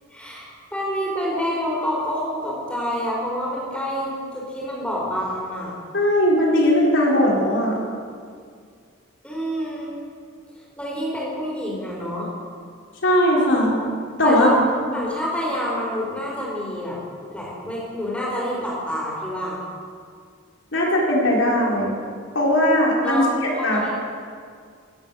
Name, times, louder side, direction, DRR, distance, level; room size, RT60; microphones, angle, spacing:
voice 1, 0.1-5.7 9.2-9.9 10.8-12.3 14.2-14.6 14.9-17.0 17.3-19.6 23.0-23.3 23.6-23.9, equal, 5° left, -4 dB, 4.8 m, -27 dB
voice 2, 5.9-7.8 13.0-13.8 14.2-14.5 20.7-21.9 22.3-23.2 23.6-23.9, left 1 dB, 75° left, -3 dB, 4.0 m, -19 dB
18.0 x 9.7 x 7.3 m, 2.1 s
head